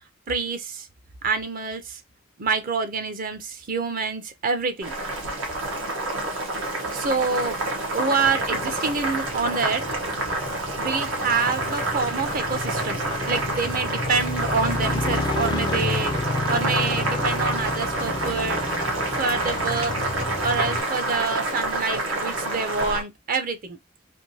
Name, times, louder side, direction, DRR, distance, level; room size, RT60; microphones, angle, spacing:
voice 1, 0.3-0.9 1.2-2.0 2.4-4.9 6.9-7.6 7.9-9.8 10.7-13.0 13.3-18.6 19.1-20.0 20.4-23.8, right 4 dB, 45° right, 0.7 m, -27 dB
Boiling, 4.8-23.0, right 2 dB, 85° right, 1.4 m, -28 dB
Motorcycle, 8.2-20.8, left 3 dB, 20° left, 0.3 m, -31 dB
3.5 x 2.6 x 2.8 m
head